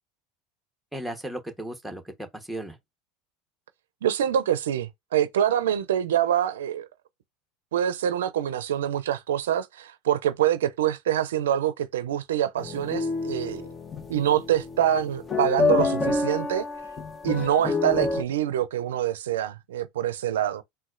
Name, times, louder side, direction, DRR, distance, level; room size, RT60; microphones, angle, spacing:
voice 1, 0.9-2.8 17.3-17.5, right 1 dB, ahead, 1.0 m, -36 dB
voice 2, 4.0-6.9 7.7-13.7 14.1-16.6 17.2-20.6, right 10 dB, 85° right, 0.4 m, -25 dB
sound 1, 12.6-18.2, left 4 dB, 25° left, 0.9 m, -28 dB
4.0 x 2.2 x 2.5 m
hypercardioid pair, 95°, 0 cm